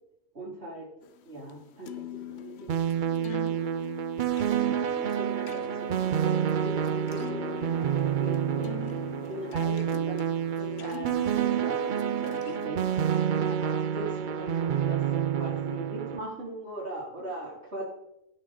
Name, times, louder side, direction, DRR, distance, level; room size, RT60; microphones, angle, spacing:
voice 1, 0.3-0.9 1.2-1.9 2.3-3.7 4.6-8.9 9.3-10.3 10.8-17.8, right 1 dB, 90° right, -5 dB, 4.3 m, -40 dB
sound 1, 1.0-12.7, left 10 dB, 80° left, 1.0 m, -43 dB
sound 2, 2.7-16.2, right 9 dB, 55° right, 0.7 m, -28 dB
16.0 x 9.8 x 3.8 m, 0.84 s
omnidirectional pair, 1.1 m